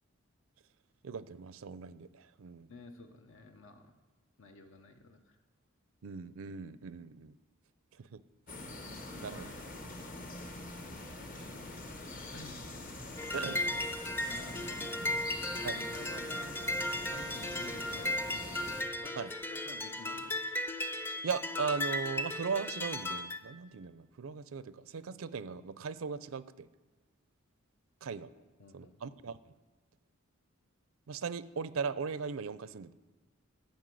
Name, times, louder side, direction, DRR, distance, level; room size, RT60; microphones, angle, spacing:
voice 1, 1.0-2.7 6.0-7.4 8.0-8.2 9.2-9.5 11.4-11.5 13.3-13.6 15.6-15.8 19.2-19.3 21.2-26.7 28.0-28.3 28.7-29.5 31.1-32.9, right 5 dB, 85° right, 15 dB, 0.5 m, -38 dB
voice 2, 2.7-3.9 4.4-5.4 12.3-12.6 13.4-13.9 14.2-15.0 15.7-16.6 17.0-18.6 19.0-20.3 28.6-29.0, left 3 dB, 75° left, 6 dB, 0.9 m, -52 dB
sound 1, 8.5-18.8, left 2 dB, 45° left, 1.1 m, -44 dB
sound 2, 13.2-23.4, left 1 dB, 10° left, 0.5 m, -36 dB
11.5 x 5.4 x 7.7 m, 1.3 s
head